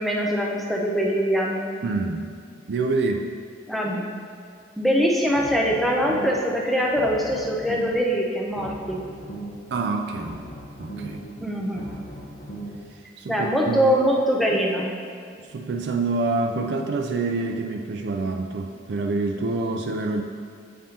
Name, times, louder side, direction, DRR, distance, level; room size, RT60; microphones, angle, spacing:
voice 1, 0.0-1.7 3.7-4.1 4.8-9.0 11.4-11.8 13.3-14.9, equal, ahead, -2 dB, 0.6 m, -23 dB
voice 2, 1.8-2.3 2.7-3.4 9.7-10.4 10.8-11.2 13.2-13.9 15.4-20.2, right 3 dB, 70° right, 3 dB, 0.4 m, -27 dB
sound 1, 5.2-6.5 6.8-8.1 8.4-9.7 10.0-12.8, right 1 dB, 70° left, 1.0 m, -39 dB
7.6 x 5.3 x 2.9 m, 2.3 s
head